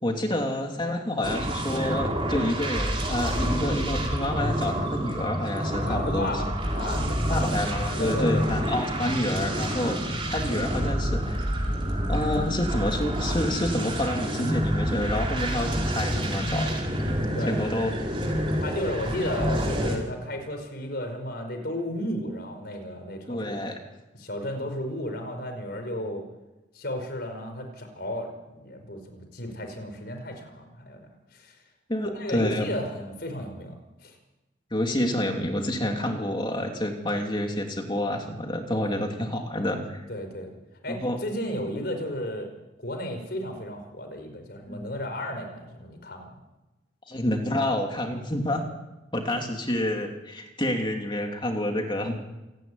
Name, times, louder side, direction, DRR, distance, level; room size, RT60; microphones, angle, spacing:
voice 1, 0.0-6.3 7.3-11.5 12.1-16.7 17.5-18.0 23.3-23.8 31.9-32.7 34.7-40.0 40.9-41.2 44.7-44.9 47.1-48.6 49.1-52.2, left 1 dB, 25° left, 3 dB, 2.8 m, -28 dB
sound 1, 1.2-20.0, equal, 30° right, 4.4 m, -28 dB
voice 2, 5.8-7.6 7.9-8.4 10.5-10.6 17.3-17.6 18.6-23.6 24.2-26.2 26.7-31.1 31.3-31.6 32.1-34.2 38.8-38.9 40.1-40.6 40.8-42.5 42.8-46.3 49.3-49.5, left 1 dB, 55° left, 5 dB, 5.0 m, -34 dB
27.0 x 11.0 x 9.9 m, 1.1 s
head